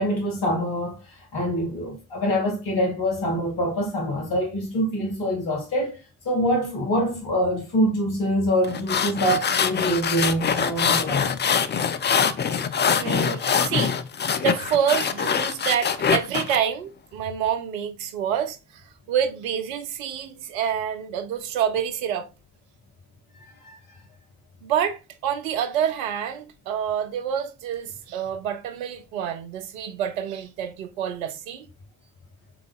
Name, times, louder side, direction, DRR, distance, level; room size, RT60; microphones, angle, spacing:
voice 1, 0.0-6.0 6.2-11.3 23.4-23.8, equal, 65° left, 2.3 m, -25 dB
sound 1, 8.6-16.6, left 7 dB, 25° left, 0.5 m, -24 dB
voice 2, 13.0-18.6 19.1-22.3 24.6-31.7, right 8 dB, 75° right, 0.7 m, -27 dB
5.8 x 3.9 x 2.4 m
figure-of-eight pair, 40°, 42 cm